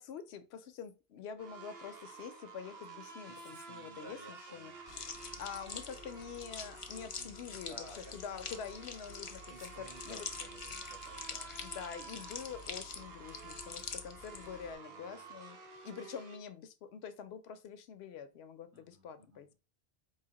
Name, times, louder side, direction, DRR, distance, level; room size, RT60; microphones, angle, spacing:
voice 1, 0.0-4.7 5.4-10.3 11.6-15.6 15.8-19.5, left 7 dB, 75° left, 0.9 m, -46 dB
sound 1, 1.4-16.4, right 4 dB, 70° right, 1.0 m, -51 dB
voice 2, 3.2-4.8 5.3-5.7 7.2-8.6 9.5-11.5 14.8-15.9 18.7-19.5, right 1 dB, 30° right, 1.2 m, -56 dB
sound 2, 4.9-14.7, left 5 dB, 45° left, 0.4 m, -46 dB
4.8 x 2.9 x 2.8 m
omnidirectional pair, 1.1 m